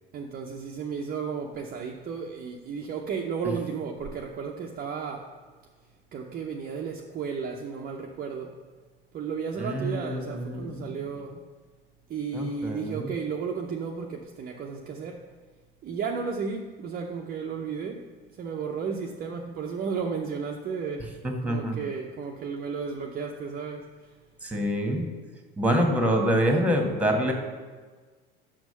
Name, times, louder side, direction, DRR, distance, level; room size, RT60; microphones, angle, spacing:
voice 1, 0.1-5.3 6.1-8.5 9.1-11.4 12.1-15.2 15.8-18.0 18.4-21.1 21.4-24.1, right 5 dB, 30° right, 0 dB, 0.7 m, -33 dB
voice 2, 9.6-10.7 12.3-13.1 21.2-21.9 24.4-25.0 25.6-27.3, equal, 5° right, 3 dB, 1.5 m, -26 dB
6.2 x 6.1 x 5.5 m, 1.4 s
figure-of-eight pair, 75°, 30 cm